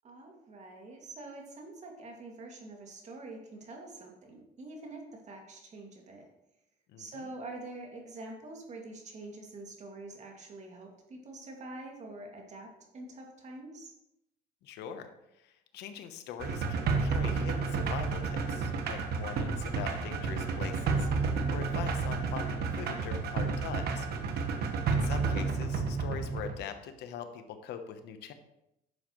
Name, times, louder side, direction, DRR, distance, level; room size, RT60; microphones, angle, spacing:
voice 1, 0.0-6.3 7.0-13.9 24.3-24.9, right 2 dB, 45° right, 1 dB, 2.4 m, -46 dB
voice 2, 6.9-7.3 14.6-15.1 15.4-24.1 24.9-28.3, left 8 dB, 80° left, 8 dB, 1.0 m, -42 dB
sound 1, 16.4-26.6, right 4 dB, 70° right, 1.3 m, -31 dB
11.0 x 7.6 x 3.2 m, 0.86 s
cardioid pair, 110°, 17 cm